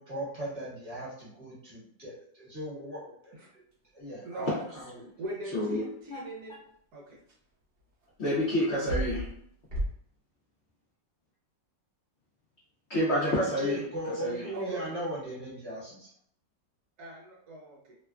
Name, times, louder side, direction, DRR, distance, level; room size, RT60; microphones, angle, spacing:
voice 1, 0.0-3.3 3.9-5.1 13.3-16.1, equal, 25° right, -8 dB, 1.0 m, -37 dB
voice 2, 4.2-4.6 5.2-6.6 6.9-7.2 14.5-15.0 17.0-18.0, right 1 dB, 70° right, -3 dB, 1.1 m, -40 dB
voice 3, 5.5-5.8 6.1-6.2 8.2-9.3 12.9-13.8 14.2-14.5, equal, 85° left, -6 dB, 0.6 m, -28 dB
sound 1, 7.3-7.4 8.6-9.4 9.7-9.9, equal, 55° right, 0.6 m, -32 dB
3.0 x 2.2 x 2.3 m, 0.65 s
omnidirectional pair, 2.0 m